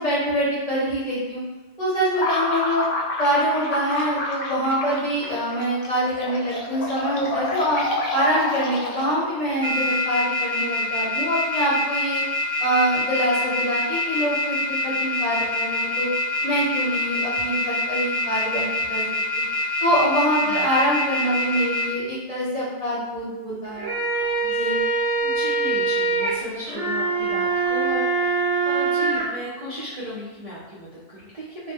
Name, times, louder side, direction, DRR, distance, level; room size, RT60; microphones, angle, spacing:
voice 1, 0.0-1.4 1.8-2.9 3.2-7.8 8.1-12.2 12.6-16.1 16.4-19.0 19.8-23.9 24.5-24.8, equal, 35° left, -8 dB, 0.8 m, -24 dB
sound 1, 2.1-9.4, left 2 dB, 70° left, 0.8 m, -29 dB
sound 2, 6.5-6.9 7.6-8.2 8.7-9.0 9.4-21.8, left 2 dB, 5° right, 1.1 m, -25 dB
voice 2, 20.4-20.7 24.8-31.7, equal, 40° right, -10 dB, 0.5 m, -36 dB
sound 3, 23.6-29.2, right 3 dB, 80° right, 0.9 m, -23 dB
2.2 x 2.1 x 3.4 m, 1.2 s
omnidirectional pair, 1.2 m